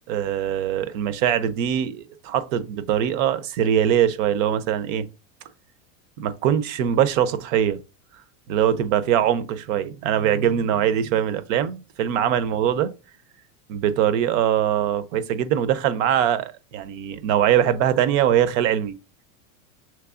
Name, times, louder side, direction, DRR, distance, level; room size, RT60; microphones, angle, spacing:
voice 1, 0.1-5.1 6.2-7.8 8.5-12.9 13.7-19.0, right 10 dB, 65° right, 0.7 m, -22 dB
5.9 x 3.1 x 2.4 m
supercardioid pair, 130°, 41 cm